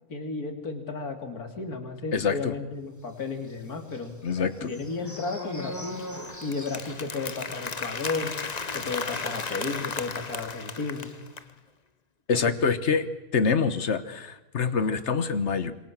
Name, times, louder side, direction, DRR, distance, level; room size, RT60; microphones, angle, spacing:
voice 1, 0.1-6.0 6.4-8.3 8.7-11.1 12.4-12.5, left 3 dB, 80° left, 5 dB, 3.3 m, -33 dB
voice 2, 2.1-2.5 4.2-4.7 12.3-13.1 13.3-15.7, left 5 dB, 50° left, 12 dB, 1.6 m, -25 dB
sound 1, 3.4-10.1 10.4-10.6 10.9-11.2, left 1 dB, 10° left, 2.1 m, -43 dB
Applause, 5.7-11.5, left 4 dB, 30° left, 1.0 m, -35 dB
26.5 x 23.5 x 7.5 m, 1.0 s
omnidirectional pair, 1.6 m